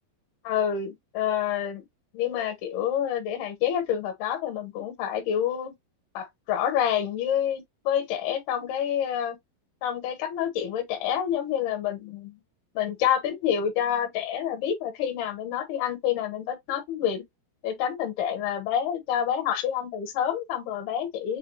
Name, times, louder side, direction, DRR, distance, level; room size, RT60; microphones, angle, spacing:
voice 1, 0.4-1.8 2.1-5.7 6.1-9.4 9.8-12.4 12.7-17.2 17.6-21.4, left 9 dB, 75° left, 2.7 m, -28 dB
6.9 x 2.5 x 2.6 m
omnidirectional pair, 5.0 m